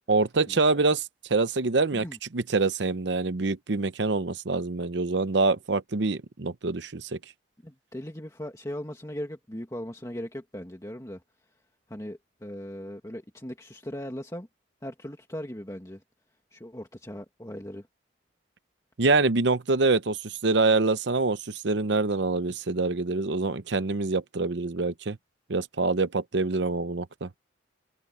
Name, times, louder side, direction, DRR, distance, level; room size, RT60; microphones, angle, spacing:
voice 1, 0.1-1.0 1.3-2.0 2.3-7.2 19.0-25.2 25.5-27.3, right 3 dB, 65° right, 0.8 m, -25 dB
voice 2, 7.6-11.2 11.9-14.5 14.8-16.0 16.5-17.9, equal, 15° left, 1.9 m, -38 dB
head